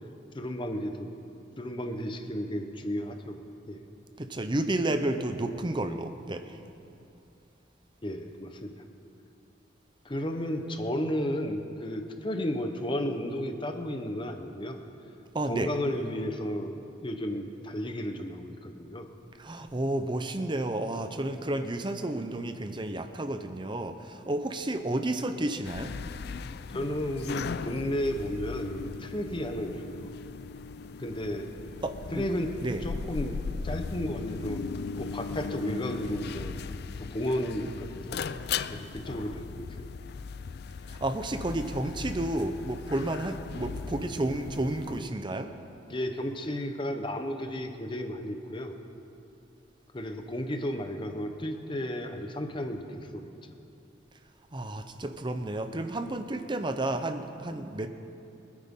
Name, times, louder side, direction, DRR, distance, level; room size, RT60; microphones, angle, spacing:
voice 1, 0.3-1.1 1.6-3.8 8.0-8.8 10.0-14.8 15.5-16.7 17.0-19.1 26.7-30.2 31.0-31.5 32.1-32.5 32.8-33.4 33.6-34.6 35.0-36.6 37.0-38.2 38.7-39.9 45.9-48.8 49.9-53.5, equal, 25° left, 6 dB, 0.9 m, -33 dB
voice 2, 4.2-6.6 15.3-15.7 19.4-26.0 31.8-32.2 32.6-32.8 40.9-45.5 54.5-57.9, right 1 dB, 25° right, 8 dB, 0.7 m, -31 dB
sound 1, 25.6-45.0, left 5 dB, 60° left, 0.4 m, -38 dB
24.5 x 9.8 x 3.7 m, 2.8 s
head